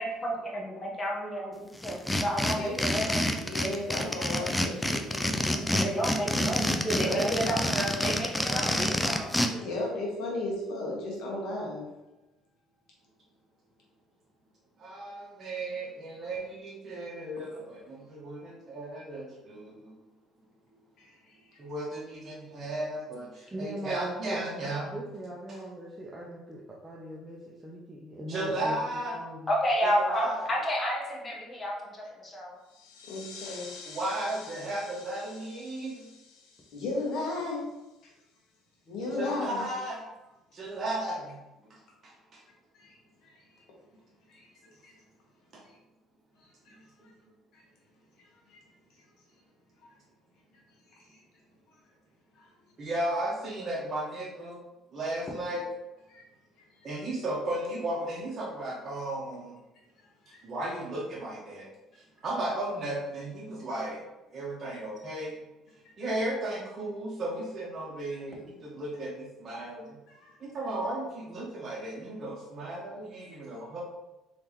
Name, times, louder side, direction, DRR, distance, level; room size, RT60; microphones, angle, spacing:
voice 1, 0.0-3.3 5.4-7.6 8.0-9.7 29.5-32.6, equal, 30° left, -2 dB, 1.2 m, -31 dB
sound 1, 1.8-9.5, left 1 dB, 10° left, 0.4 m, -28 dB
voice 2, 2.4-3.0 3.3-5.4 7.0-7.2 9.6-11.8 21.0-21.6 33.1-33.7 36.7-37.6 38.9-39.7 42.7-43.6 44.3-44.5 44.8-44.9 45.6-45.8 46.4-46.7 47.5-47.6 48.5-48.6 50.9-51.2 52.3-52.5 56.1-56.2 56.8-56.9 60.2-60.4 70.1-70.4 73.2-73.3, left 2 dB, 65° left, -3 dB, 1.4 m, -36 dB
voice 3, 6.9-8.2 8.5-8.8 14.8-20.0 21.6-25.0 28.3-29.2 29.8-30.5 33.9-36.1 39.2-40.0 40.5-41.4 41.7-42.4 45.5-45.6 47.0-47.1 52.8-54.6 54.9-55.6 56.8-59.6 60.4-61.7 62.2-64.0 64.3-65.4 66.0-70.0 70.4-73.8, right 1 dB, 40° right, -4 dB, 1.0 m, -35 dB
voice 4, 23.5-24.4 24.9-29.5, right 1 dB, 15° right, -5 dB, 0.8 m, -40 dB
sound 2, 32.6-38.0, left 5 dB, 90° left, 0.6 m, -49 dB
3.5 x 3.2 x 3.0 m, 1.0 s
hypercardioid pair, 70°, 0 cm